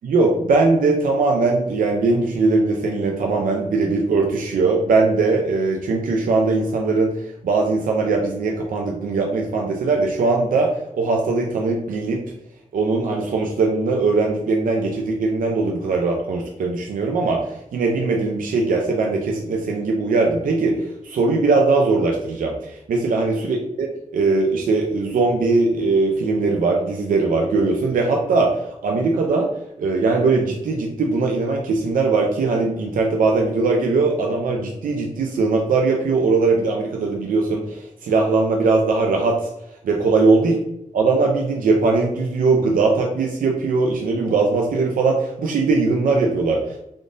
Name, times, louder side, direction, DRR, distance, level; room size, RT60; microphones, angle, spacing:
voice 1, 0.0-7.1 7.4-12.2 12.7-29.5 29.8-39.4 39.8-40.5 40.9-46.8, right 3 dB, 75° right, 1 dB, 0.4 m, -20 dB
3.5 x 2.5 x 2.5 m, 0.83 s
wide cardioid pair, 150°, 14 cm